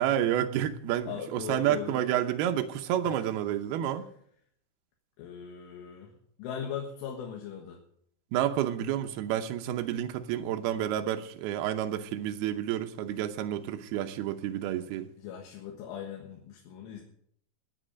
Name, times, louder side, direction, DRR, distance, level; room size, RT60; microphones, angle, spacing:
voice 1, 0.0-4.1 8.3-15.1, right 11 dB, 85° right, 6 dB, 2.2 m, -30 dB
voice 2, 1.1-2.0 3.0-3.2 5.2-6.1 6.4-7.8 15.2-17.0, left 8 dB, 85° left, 0 dB, 4.0 m, -39 dB
20.0 x 8.5 x 5.2 m, 0.66 s
omnidirectional pair, 5.6 m